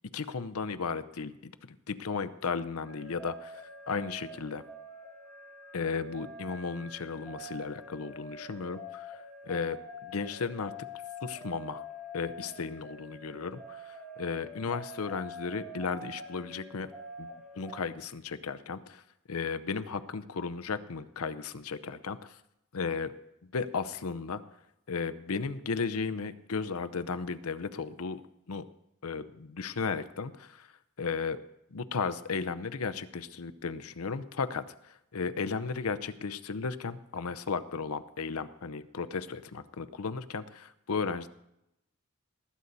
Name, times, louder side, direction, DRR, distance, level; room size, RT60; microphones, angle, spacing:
voice 1, 0.1-4.6 5.7-10.7 11.2-11.8 12.1-16.9 17.2-17.3 17.6-19.0 19.3-22.4 22.7-23.1 23.5-24.4 24.9-28.2 28.5-28.6 29.0-30.7 31.0-31.4 31.7-41.3, left 5 dB, 85° left, 11 dB, 0.7 m, -35 dB
sound 1, 2.8-17.8, left 1 dB, ahead, 5.0 m, -46 dB
19.0 x 9.5 x 4.1 m, 0.84 s
head